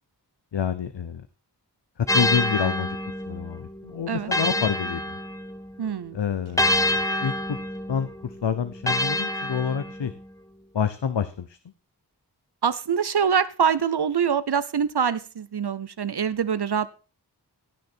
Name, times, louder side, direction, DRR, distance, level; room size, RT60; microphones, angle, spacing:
voice 1, 0.5-1.3 2.0-3.0 3.3-5.2 6.1-7.6 7.9-10.1 10.7-11.6, left 7 dB, 80° left, 11 dB, 0.9 m, -28 dB
sound 1, 2.1-5.8 6.6-10.2, left 1 dB, 10° left, 1.0 m, -27 dB
voice 2, 4.1-4.7 5.8-6.2 12.6-16.9, right 7 dB, 70° right, 16 dB, 0.8 m, -25 dB
16.5 x 6.7 x 4.4 m, 0.36 s
wide cardioid pair, 65°, 42 cm